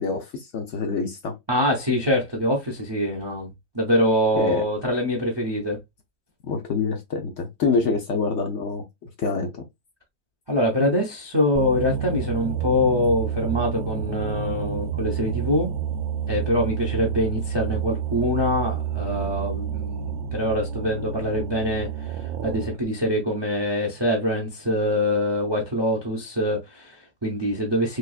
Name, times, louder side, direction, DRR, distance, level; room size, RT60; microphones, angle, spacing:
voice 1, 0.0-1.3 4.3-4.6 6.4-8.8 9.2-9.5, left 4 dB, 65° left, 0.8 m, -26 dB
voice 2, 1.5-5.8 7.8-7.9 10.5-15.7 16.3-28.0, left 1 dB, 40° right, 0.3 m, -24 dB
sound 1, 11.5-22.8, right 8 dB, 75° right, 0.6 m, -29 dB
3.4 x 3.1 x 2.3 m
omnidirectional pair, 1.8 m